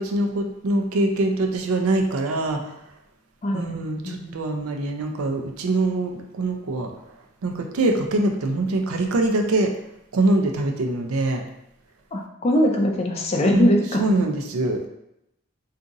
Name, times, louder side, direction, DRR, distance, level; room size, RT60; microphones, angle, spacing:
voice 1, 0.0-2.7 3.5-6.9 7.4-9.7 10.1-11.4 13.5-13.7 14.0-14.9, right 2 dB, 85° right, 4 dB, 0.5 m, -23 dB
voice 2, 4.0-4.4 12.1-14.0, left 1 dB, 30° left, 1 dB, 0.4 m, -21 dB
2.6 x 2.4 x 3.8 m, 0.83 s
head